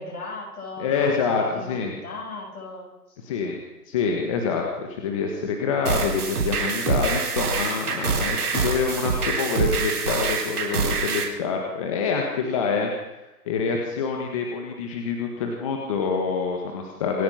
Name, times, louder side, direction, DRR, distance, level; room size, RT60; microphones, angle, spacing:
voice 1, 0.0-2.9, left 3 dB, 65° left, 0 dB, 7.2 m, -37 dB
voice 2, 0.8-2.0 3.2-3.6 3.9-12.9 13.4-17.2, left 5 dB, 20° left, 1 dB, 1.7 m, -26 dB
sound 1, 5.9-11.2, right 4 dB, 65° right, 3.9 m, -25 dB
26.5 x 9.0 x 5.9 m, 1.0 s
hypercardioid pair, 165°, 48 cm